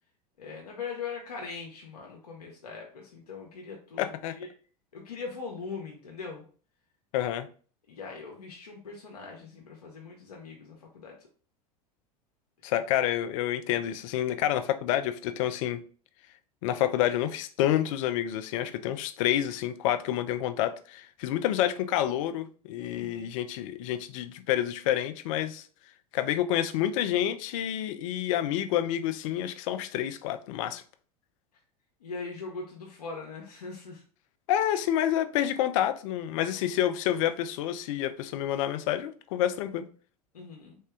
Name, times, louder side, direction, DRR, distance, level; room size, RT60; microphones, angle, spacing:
voice 1, 0.4-4.5 4.9-6.4 7.9-11.2 23.0-23.3 32.0-34.0 40.3-40.8, left 4 dB, 80° left, 0.7 m, -41 dB
voice 2, 4.0-4.3 7.1-7.5 12.6-15.8 16.6-25.7 26.1-30.8 34.5-39.9, left 11 dB, 55° left, 0.4 m, -28 dB
3.7 x 2.2 x 3.3 m
figure-of-eight pair, 80°, 20 cm